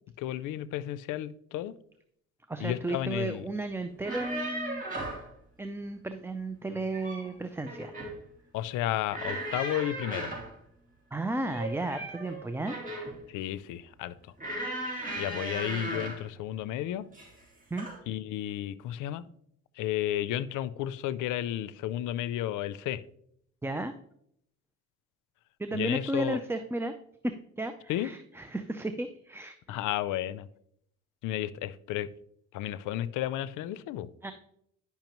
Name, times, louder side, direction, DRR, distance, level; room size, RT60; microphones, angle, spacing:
voice 1, 0.2-1.7 2.6-3.4 8.5-10.3 13.3-14.1 15.2-17.1 18.1-19.3 19.8-23.0 25.7-26.4 27.9-28.1 29.7-30.5 31.2-32.1 32.5-34.1, left 12 dB, 90° left, 0.5 m, -32 dB
voice 2, 2.5-4.8 5.6-7.9 11.1-12.8 17.7-17.9 23.6-24.0 25.6-26.9 27.2-29.8 34.2-34.3, right 2 dB, 10° right, 0.4 m, -34 dB
sound 1, 3.9-5.3 6.7-7.3 7.7-8.2 9.1-10.5 11.5-13.2 14.4-16.2 17.1-17.4 17.8-18.0, right 1 dB, 25° right, 3.4 m, -36 dB
10.5 x 5.7 x 3.0 m
cardioid pair, 90°, 30 cm